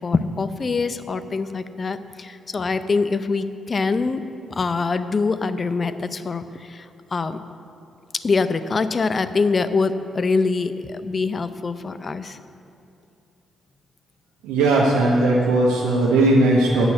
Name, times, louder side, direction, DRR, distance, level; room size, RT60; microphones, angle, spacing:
voice 1, 0.0-4.2 4.5-6.9 7.1-7.4 8.1-12.4, left 4 dB, 45° left, 12 dB, 0.5 m, -24 dB
voice 2, 14.4-16.9, right 2 dB, 85° right, -4 dB, 0.9 m, -18 dB
8.1 x 5.9 x 7.5 m, 2.6 s
supercardioid pair, 50°, 0 cm